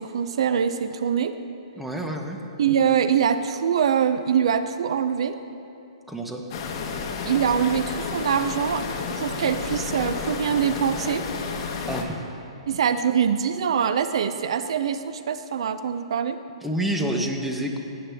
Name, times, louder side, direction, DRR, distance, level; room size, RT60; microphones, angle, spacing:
voice 1, 0.0-1.4 2.6-5.4 7.3-11.3 12.7-16.4, right 8 dB, 65° right, 11 dB, 0.5 m, -24 dB
voice 2, 1.8-2.4 6.1-6.4 11.9-12.1 16.6-17.8, right 1 dB, ahead, 2 dB, 0.8 m, -28 dB
sound 1, 6.5-12.0, left 5 dB, 40° left, 1.2 m, -31 dB
16.0 x 8.5 x 3.5 m, 2.7 s
hypercardioid pair, 150°, 3 cm